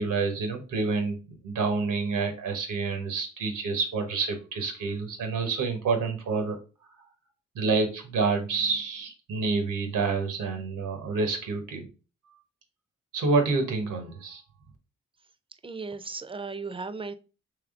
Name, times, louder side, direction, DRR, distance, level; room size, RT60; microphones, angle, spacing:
voice 1, 0.0-6.6 7.5-11.9 13.1-14.4, right 4 dB, 85° right, 6 dB, 1.0 m, -28 dB
voice 2, 15.6-17.1, right 4 dB, 15° right, 11 dB, 0.5 m, -36 dB
3.5 x 3.2 x 3.6 m, 0.34 s
supercardioid pair, 45°, 30 cm